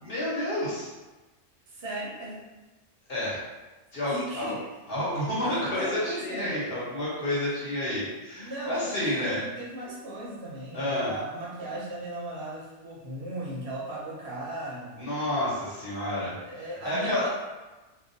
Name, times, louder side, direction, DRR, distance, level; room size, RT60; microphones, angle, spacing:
voice 1, 0.0-0.9 3.1-3.4 3.9-4.5 4.9-9.5 10.7-11.1 15.0-16.4 16.8-17.2, left 1 dB, 55° left, -8 dB, 1.0 m, -29 dB
voice 2, 1.7-2.5 4.1-4.6 5.5-6.6 8.4-15.0 16.3-17.3, right 1 dB, 65° right, -5 dB, 0.8 m, -37 dB
2.3 x 2.2 x 2.6 m, 1.1 s
omnidirectional pair, 1.2 m